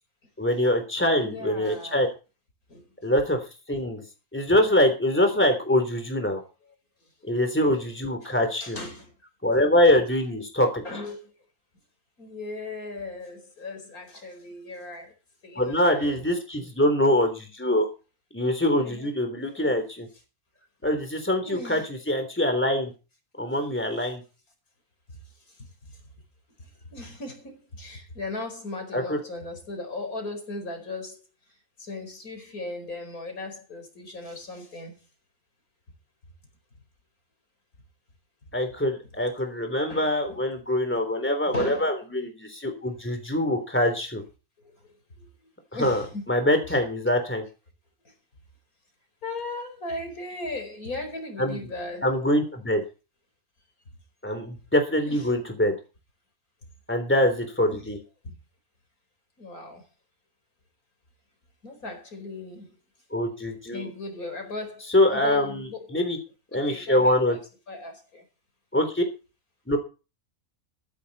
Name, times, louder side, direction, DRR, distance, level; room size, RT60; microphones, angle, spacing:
voice 1, 0.4-2.1 3.0-3.4 3.7-4.0 4.3-6.4 7.2-8.8 9.4-10.8 15.6-17.9 18.3-20.1 20.8-22.9 23.4-24.2 28.9-29.2 38.5-44.2 45.8-46.0 46.3-47.4 51.4-51.6 52.0-52.8 54.2-55.7 56.9-58.0 63.1-63.9 64.9-66.2 66.5-67.4 68.7-69.0 69.7-69.8, left 1 dB, 10° left, 3.5 m, -24 dB
voice 2, 1.2-2.0 2.7-3.1 8.2-8.3 8.6-9.1 9.9-10.0 10.8-11.3 12.2-15.1 15.4-16.2 18.8-19.1 19.5-19.7 21.4-21.9 26.9-31.2 31.8-35.0 39.9-40.4 41.4-41.9 45.2-45.3 45.7-46.2 46.7-46.8 49.2-52.1 55.1-55.3 57.7-57.9 58.2-58.4 59.4-59.8 61.6-62.7 63.7-64.8 65.1-66.0 66.7-67.4 67.7-68.2, left 2 dB, 85° left, 5.2 m, -37 dB
15.0 x 13.5 x 4.2 m
omnidirectional pair, 1.5 m